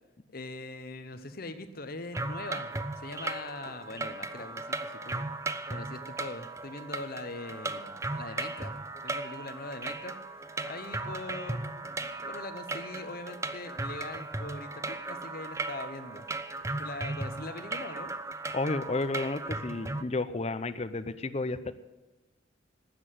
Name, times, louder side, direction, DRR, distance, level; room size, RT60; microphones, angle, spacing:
voice 1, 0.3-5.2 5.7-8.7 9.0-16.3 16.8-18.1, left 2 dB, 50° left, 9 dB, 1.0 m, -42 dB
sound 1, 2.1-20.0, right 2 dB, 15° right, 0.5 m, -37 dB
voice 2, 18.5-21.7, left 2 dB, 35° left, 11 dB, 0.6 m, -32 dB
13.0 x 7.8 x 9.2 m, 1.1 s
head